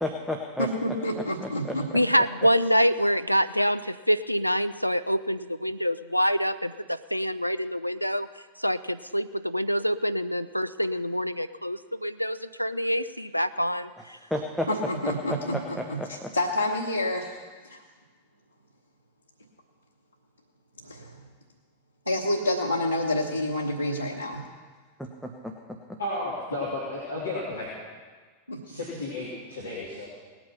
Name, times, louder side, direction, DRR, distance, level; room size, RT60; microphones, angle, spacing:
voice 1, 0.0-0.7 1.2-1.7 14.3-14.7 15.0-16.3 25.0-26.0, left 1 dB, ahead, 1 dB, 1.1 m, -33 dB
voice 2, 0.6-1.9 14.7-17.3 17.7-17.8 20.8-21.2 22.1-24.4 28.5-28.6, left 1 dB, 90° right, -1 dB, 1.2 m, -28 dB
voice 3, 1.9-8.3 8.6-14.2, equal, 90° left, 13 dB, 0.4 m, -26 dB
voice 4, 26.0-27.7 28.6-30.1, left 2 dB, 75° left, -6 dB, 2.9 m, -33 dB
19.0 x 9.0 x 5.7 m, 1.4 s
figure-of-eight pair, 90°, 0 cm